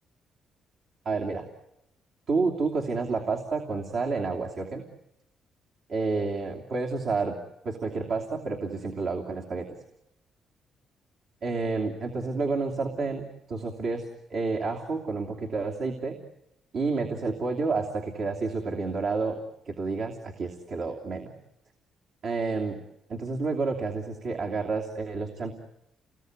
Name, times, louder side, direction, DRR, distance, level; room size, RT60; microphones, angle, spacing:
voice 1, 1.0-1.4 2.3-4.8 5.9-7.4 7.6-9.7 11.4-16.2 16.7-19.4 19.7-21.3 22.2-22.8 23.1-25.5, right 4 dB, 60° right, 0 dB, 2.8 m, -30 dB
29.0 x 20.5 x 9.5 m, 0.86 s
cardioid pair, 90°, 0 cm